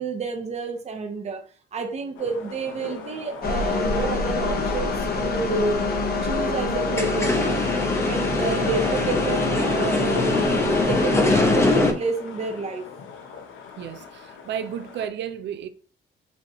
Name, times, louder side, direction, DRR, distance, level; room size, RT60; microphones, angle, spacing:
voice 1, 0.0-1.4 1.7-5.8 6.2-7.4 8.0-12.9, right 4 dB, 35° right, 0.8 m, -29 dB
sound 1, 2.2-15.1, left 6 dB, 80° left, 0.9 m, -41 dB
sound 2, 3.4-11.9, left 3 dB, 50° left, 1.1 m, -26 dB
sound 3, 6.8-11.9, left 2 dB, 15° left, 0.9 m, -23 dB
voice 2, 13.8-15.7, right 9 dB, 65° right, 0.5 m, -32 dB
6.9 x 2.5 x 3.0 m
cardioid pair, 90°, 20 cm